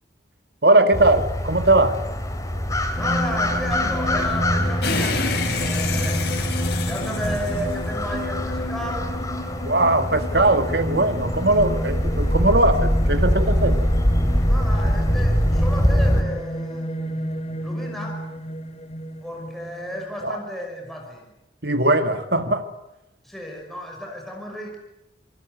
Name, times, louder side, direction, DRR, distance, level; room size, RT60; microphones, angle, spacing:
voice 1, 0.6-2.0 9.7-13.9 20.2-20.4 21.6-22.7, right 2 dB, 60° right, 8 dB, 2.0 m, -20 dB
sound 1, 0.9-16.2, equal, 15° left, 2.9 m, -23 dB
sound 2, 2.9-20.0, equal, 35° left, 2.9 m, -31 dB
voice 2, 2.9-6.2 6.8-9.1 14.5-17.2 17.6-18.2 19.2-21.3 23.2-24.8, equal, ahead, 0 dB, 5.7 m, -33 dB
sound 3, 4.8-8.3, left 4 dB, 60° left, 5.8 m, -29 dB
28.0 x 20.0 x 9.4 m, 0.90 s
head